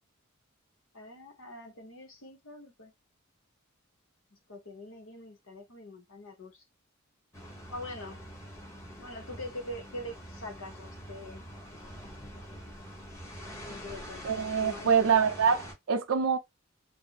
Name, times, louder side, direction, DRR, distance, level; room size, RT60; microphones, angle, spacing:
voice 1, 0.9-2.9 4.5-6.6 7.7-8.2 9.0-11.4 13.5-14.2 14.6-14.9, left 1 dB, 70° left, 0.9 m, -43 dB
sound 1, 7.3-15.7, equal, 15° left, 0.9 m, -45 dB
voice 2, 14.2-16.4, right 6 dB, 70° right, 0.5 m, -25 dB
2.5 x 2.0 x 3.9 m
head